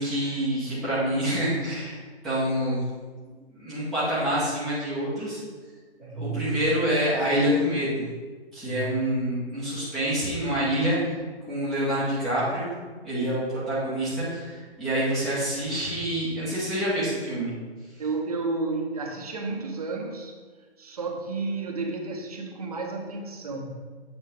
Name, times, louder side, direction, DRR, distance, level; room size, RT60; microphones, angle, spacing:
voice 1, 0.0-2.7 3.2-5.4 6.1-8.0 8.5-11.0 11.5-17.5, equal, ahead, -13 dB, 0.7 m, -27 dB
voice 2, 6.0-6.6 8.6-9.0 18.0-20.4 20.8-23.8, right 3 dB, 35° right, 2 dB, 0.8 m, -32 dB
8.0 x 4.1 x 4.9 m, 1.4 s
figure-of-eight pair, 140°, 33 cm